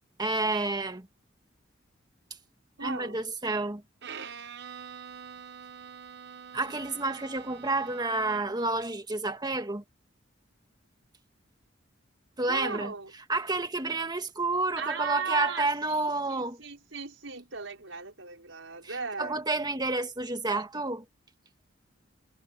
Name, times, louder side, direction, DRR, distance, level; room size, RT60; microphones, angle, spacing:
voice 1, 0.2-1.1 2.8-3.8 6.5-9.8 12.4-12.9 13.3-16.6 18.9-21.0, right 2 dB, 20° right, 1.7 m, -30 dB
voice 2, 2.8-3.3 12.5-13.1 14.8-19.4, right 5 dB, 85° right, 5.0 m, -37 dB
Bowed string instrument, 4.0-8.7, right 7 dB, 60° right, 1.4 m, -45 dB
head